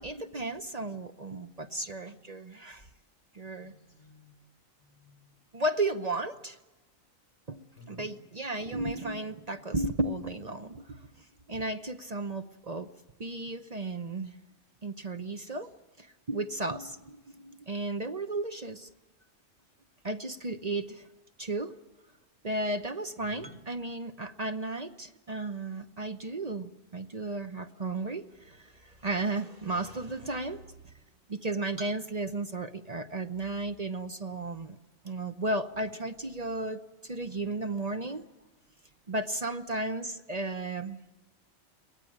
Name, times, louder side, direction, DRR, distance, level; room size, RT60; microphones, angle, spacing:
voice 1, 0.0-2.9 3.3-3.7 5.5-6.6 7.5-11.0 11.5-12.9 13.2-14.4 14.8-15.7 16.0-18.9 20.0-21.1 21.4-21.7 22.4-30.6 31.3-34.8 35.0-38.3 39.1-41.0, right 2 dB, 35° right, 8 dB, 0.8 m, -34 dB
voice 2, 3.5-4.4 4.8-5.4 7.7-8.1 23.2-23.5, left 2 dB, 50° right, 4 dB, 5.6 m, -54 dB
23.0 x 18.5 x 8.6 m, 1.1 s
omnidirectional pair, 1.3 m